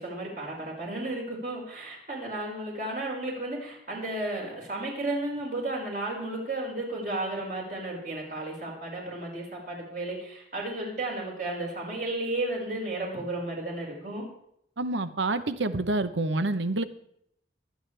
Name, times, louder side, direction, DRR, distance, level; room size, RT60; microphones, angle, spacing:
voice 1, 0.0-14.2, right 2 dB, 50° right, -2 dB, 5.2 m, -33 dB
voice 2, 14.8-16.8, right 2 dB, 85° right, 12 dB, 0.9 m, -27 dB
25.0 x 9.3 x 3.4 m, 0.73 s
head